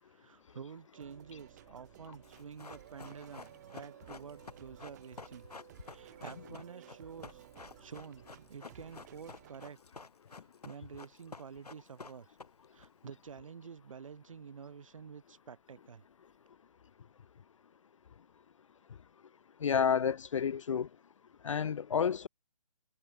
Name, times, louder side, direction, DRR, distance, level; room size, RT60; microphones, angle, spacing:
voice 1, 0.0-5.5 5.8-7.5 7.8-9.8 10.4-12.4 12.7-16.0, right 6 dB, 55° right, 7.6 m, -49 dB
sound 1, 0.9-9.7, right 14 dB, 25° right, 1.0 m, -56 dB
Run, 2.2-12.9 13.1-13.2, left 4 dB, 75° left, 6.2 m, -51 dB
voice 2, 19.6-20.9 21.4-22.3, left 7 dB, 55° left, 0.4 m, -30 dB
figure-of-eight pair, 150°, 20 cm